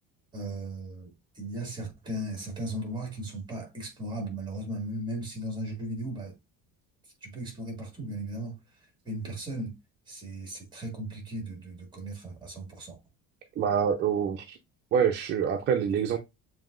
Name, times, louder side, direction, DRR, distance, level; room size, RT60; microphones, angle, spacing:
voice 1, 0.3-6.3 7.2-8.6 9.1-9.7 10.1-13.0, right 1 dB, 15° right, 1.8 m, -36 dB
voice 2, 13.6-14.6 14.9-16.2, right 7 dB, 35° right, 0.5 m, -26 dB
7.2 x 2.8 x 2.5 m
cardioid pair, 165°, 33 cm